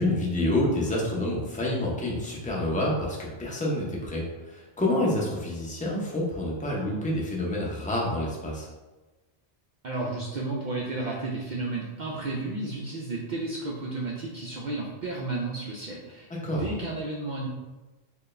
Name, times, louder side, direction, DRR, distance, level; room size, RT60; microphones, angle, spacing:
voice 1, 0.0-8.7 16.3-16.7, left 1 dB, 10° left, -4 dB, 0.5 m, -28 dB
voice 2, 9.8-17.5, right 2 dB, 60° right, -3 dB, 0.5 m, -32 dB
4.4 x 2.3 x 3.1 m, 1.2 s
omnidirectional pair, 1.1 m